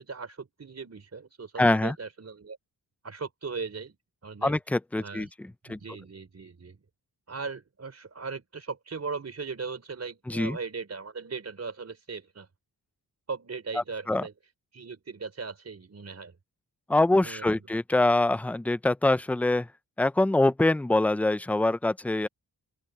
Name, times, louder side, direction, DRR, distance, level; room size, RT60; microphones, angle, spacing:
voice 1, 0.0-2.6 3.0-4.0 4.2-4.6 5.0-5.3 5.7-6.8 7.3-12.5 13.3-14.3 14.7-16.4 17.2-17.7, right 4 dB, 40° right, 4.3 m, -38 dB
voice 2, 1.6-1.9 4.4-5.8 10.3-10.6 14.1-14.2 16.9-19.7 20.0-22.3, left 2 dB, 5° left, 0.3 m, -24 dB
wide cardioid pair, 155°, 40 cm